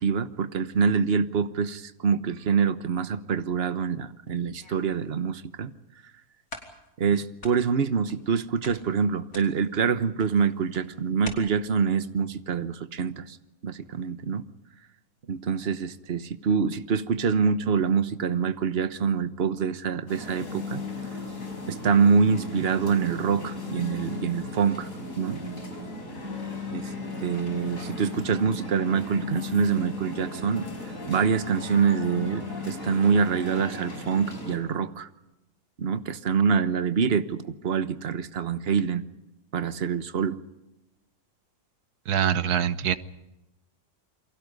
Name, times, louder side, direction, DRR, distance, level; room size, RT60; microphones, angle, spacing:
voice 1, 0.0-5.7 7.0-13.4 13.6-14.4 15.3-20.8 21.7-24.9 25.2-25.4 26.7-26.9 27.2-35.1 35.8-39.0 39.5-40.4, right 6 dB, 45° right, 12 dB, 1.2 m, -25 dB
sound 1, 4.3-5.0 5.6-5.7 6.1-6.2 6.5-7.1 7.4-8.4 8.6-11.3, left 3 dB, 85° left, 4.0 m, -45 dB
sound 2, 20.1-34.6, left 3 dB, 60° left, 5.8 m, -36 dB
voice 2, 42.1-43.0, right 9 dB, 85° right, 13 dB, 1.5 m, -24 dB
29.0 x 23.5 x 5.4 m, 0.96 s
omnidirectional pair, 1.6 m